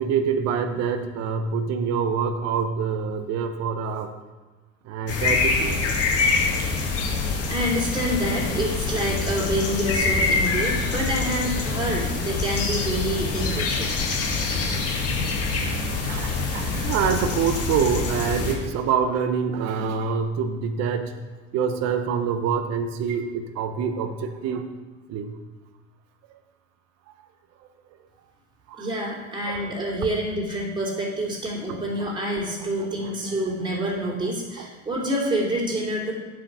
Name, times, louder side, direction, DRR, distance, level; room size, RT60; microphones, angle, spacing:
voice 1, 0.0-4.1 4.9-5.8 16.0-21.1 21.5-24.6 25.1-25.4 28.7-28.9 29.5-29.7 31.7-32.1 32.8-33.5 34.6-34.7, right 6 dB, 45° right, 9 dB, 1.0 m, -26 dB
sound 1, 5.1-18.5, left 4 dB, 40° left, 2.0 m, -25 dB
voice 2, 7.5-13.9 28.8-36.1, right 1 dB, 10° right, -4 dB, 3.1 m, -27 dB
8.7 x 5.0 x 5.8 m, 1.3 s
figure-of-eight pair, 75°, 38 cm